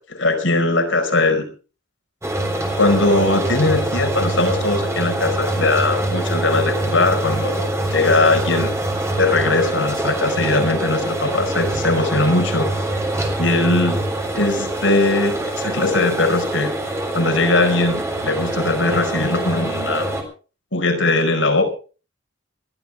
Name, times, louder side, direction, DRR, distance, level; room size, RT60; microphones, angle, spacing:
voice 1, 0.1-1.5 2.7-8.7 9.2-12.7 13.4-14.0 14.3-16.7 17.1-20.1 20.7-21.6, left 2 dB, 75° left, 5 dB, 5.0 m, -19 dB
sound 1, 2.2-20.2, right 1 dB, 15° right, 3.7 m, -24 dB
21.5 x 14.5 x 3.5 m, 0.36 s
head